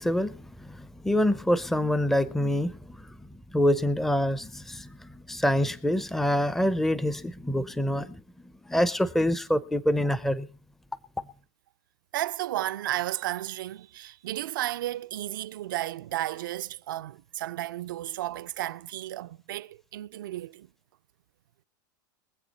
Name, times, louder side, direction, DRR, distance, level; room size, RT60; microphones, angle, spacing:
voice 1, 0.0-3.1 3.5-8.2 8.7-10.5, equal, 5° left, 0.7 m, -26 dB
voice 2, 12.1-20.7, right 14 dB, 80° right, 0.6 m, -33 dB
23.5 x 8.0 x 4.2 m
hypercardioid pair, 115°, 11 cm